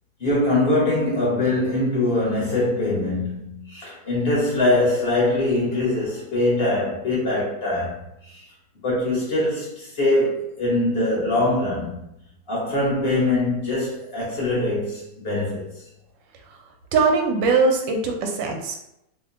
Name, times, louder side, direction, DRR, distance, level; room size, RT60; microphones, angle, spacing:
voice 1, 0.2-7.9 8.2-8.5 8.8-11.9 12.5-15.7, left 2 dB, 40° left, -6 dB, 1.0 m, -22 dB
voice 2, 16.9-18.8, right 4 dB, 80° right, 2 dB, 1.3 m, -21 dB
3.0 x 2.1 x 3.7 m, 0.84 s
omnidirectional pair, 2.0 m